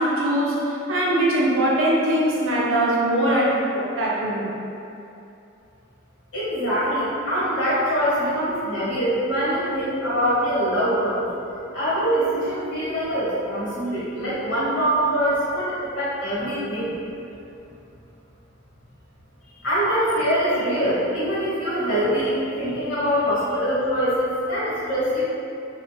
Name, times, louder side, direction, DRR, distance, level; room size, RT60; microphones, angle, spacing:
voice 1, 0.0-4.5 23.4-23.5, right 1 dB, 80° right, -5 dB, 0.6 m, -21 dB
voice 2, 6.3-11.2 11.7-16.9 19.6-25.2, equal, 70° left, -9 dB, 1.1 m, -23 dB
2.6 x 2.2 x 2.2 m, 2.7 s
head